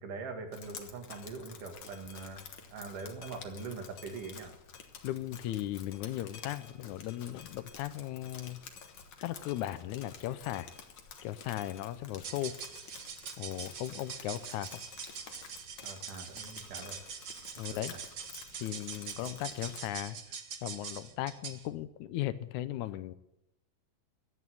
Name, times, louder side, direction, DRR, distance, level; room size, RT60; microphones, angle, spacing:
voice 1, 0.0-2.4 2.7-4.5 15.8-17.0 17.7-18.0, right 4 dB, 85° right, 4 dB, 3.5 m, -42 dB
Drip, 0.5-19.9, left 6 dB, 50° left, 1.7 m, -50 dB
voice 2, 5.0-8.6 9.2-10.7 11.2-12.5 13.4-14.7 17.6-17.9 18.6-23.1, left 14 dB, 80° left, 14 dB, 2.0 m, -37 dB
sound 1, 12.2-21.7, right 7 dB, 65° right, 1.0 m, -44 dB
12.5 x 8.5 x 9.3 m, 0.85 s
omnidirectional pair, 3.6 m